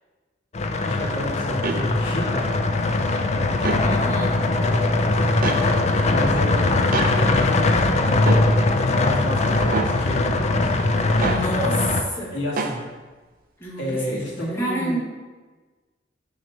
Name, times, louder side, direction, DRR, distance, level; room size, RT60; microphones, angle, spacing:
sound 1, 0.5-12.0, left 2 dB, 35° left, 0.4 m, -21 dB
voice 1, 0.9-2.5 2.8-11.0 12.3-12.8 13.8-15.0, equal, 75° left, -5 dB, 1.8 m, -32 dB
sound 2, 1.6-1.8 3.6-3.8 5.4-5.6 6.9-7.1 8.3-8.5 9.7-9.9 11.2-11.5 12.6-12.8, right 3 dB, 50° right, 0.5 m, -25 dB
voice 2, 3.8-4.3 11.2-12.3 13.6-15.0, equal, 15° left, -7 dB, 1.4 m, -29 dB
6.0 x 3.2 x 5.3 m, 1.3 s
head